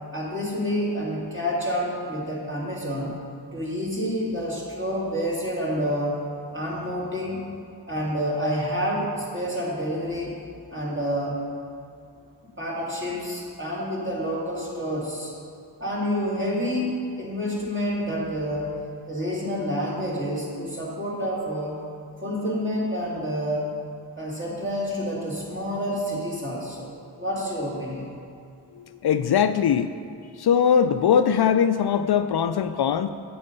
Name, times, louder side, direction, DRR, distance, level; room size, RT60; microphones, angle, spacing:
voice 1, 0.1-3.2 3.5-6.2 6.5-7.5 7.9-10.4 10.7-11.4 12.6-15.3 15.8-16.9 17.2-18.7 19.1-21.8 22.2-23.7 24.2-26.9 27.2-28.1, equal, 25° right, -5 dB, 2.8 m, -28 dB
voice 2, 28.7-29.9 30.4-33.1, left 8 dB, 65° left, 10 dB, 0.5 m, -21 dB
9.9 x 7.8 x 5.4 m, 2.6 s
wide cardioid pair, 80°, 43 cm